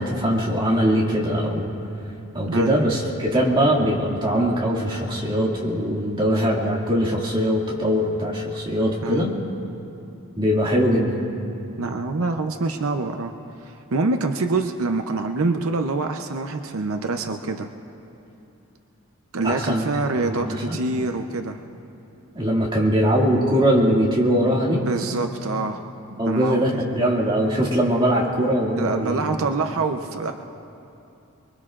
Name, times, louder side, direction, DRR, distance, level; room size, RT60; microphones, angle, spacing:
voice 1, 0.0-1.7 2.3-9.3 10.4-11.2 19.4-20.8 22.3-24.8 26.2-29.2, equal, 25° right, -4 dB, 2.2 m, -21 dB
voice 2, 2.4-2.8 9.0-9.4 11.8-13.3 13.6-17.7 19.3-21.6 24.7-25.8 26.1-26.6 28.8-30.3, right 3 dB, 80° right, 5 dB, 0.7 m, -25 dB
24.5 x 22.5 x 2.5 m, 2.8 s
head